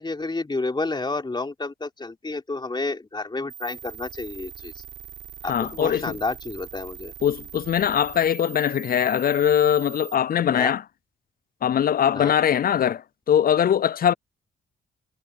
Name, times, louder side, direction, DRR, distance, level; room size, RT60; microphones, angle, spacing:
voice 1, 0.0-4.8 5.4-7.1 10.5-10.7 12.1-12.3, left 3 dB, 25° left, 3.6 m, -30 dB
sound 1, 3.5-10.1, right 10 dB, 70° right, 5.5 m, -42 dB
voice 2, 5.5-6.2 7.2-10.8 11.6-14.1, left 9 dB, 50° left, 0.5 m, -21 dB
cardioid pair, 70°, 20 cm